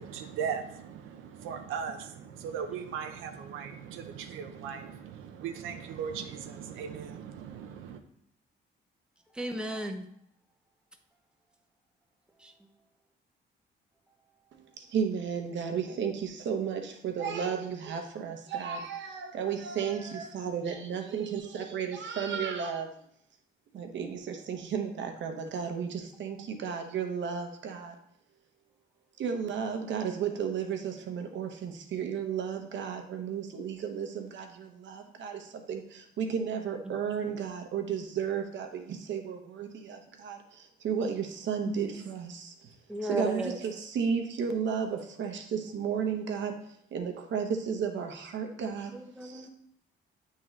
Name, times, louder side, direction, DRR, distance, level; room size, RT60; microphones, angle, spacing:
voice 1, 0.0-8.0, right 7 dB, 90° right, 5 dB, 0.6 m, -38 dB
voice 2, 9.3-10.1 12.4-12.5 41.7-41.9 42.9-43.5 48.7-49.5, right 1 dB, 5° right, 4 dB, 0.7 m, -35 dB
voice 3, 14.8-22.9 23.7-28.0 29.2-42.7 43.0-46.6 46.9-49.5, right 7 dB, 65° right, 5 dB, 0.9 m, -33 dB
8.4 x 3.8 x 3.2 m, 0.71 s
cardioid pair, 90°, 20 cm